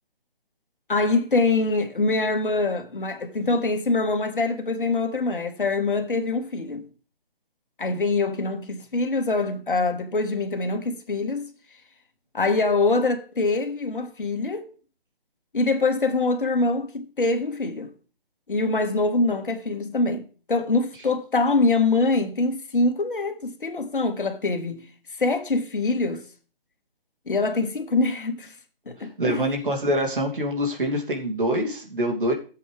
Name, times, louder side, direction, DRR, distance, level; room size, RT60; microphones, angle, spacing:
voice 1, 0.9-6.9 7.8-11.5 12.3-14.7 15.5-17.9 18.5-24.8 25.2-26.2 27.3-28.5 28.9-29.4, left 3 dB, 65° left, 2.0 m, -24 dB
voice 2, 29.2-32.3, equal, 60° right, 3.0 m, -25 dB
15.5 x 7.8 x 3.5 m
figure-of-eight pair, 150°, 29 cm